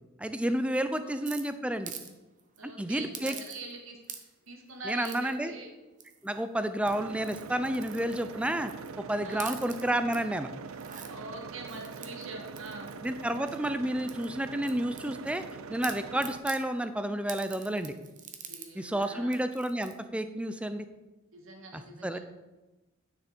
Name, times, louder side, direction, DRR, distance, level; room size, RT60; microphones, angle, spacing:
voice 1, 0.2-1.9 2.6-3.3 4.8-5.5 6.2-8.7 9.0-10.5 13.0-15.4 15.7-17.9 18.7-20.9 21.7-22.2, right 1 dB, 5° right, 10 dB, 0.4 m, -30 dB
sound 1, 1.3-2.1 2.4-2.6 3.1-3.8 4.0-4.5 5.0-5.4 6.0-6.4 6.8-8.9 9.3-10.2 10.6-11.1 11.7-13.7 14.1-15.5 15.8-16.6 17.3-18.7 19.0-19.1 19.3-19.9, right 8 dB, 40° right, 0.9 m, -45 dB
voice 2, 2.6-4.0 4.5-5.7 9.2-9.6 11.0-12.9 18.5-19.4 21.3-22.2, right 2 dB, 70° right, 1 dB, 1.8 m, -43 dB
sound 2, 6.9-16.4, right 5 dB, 90° right, 0.5 m, -43 dB
9.7 x 6.5 x 4.4 m, 1.1 s
head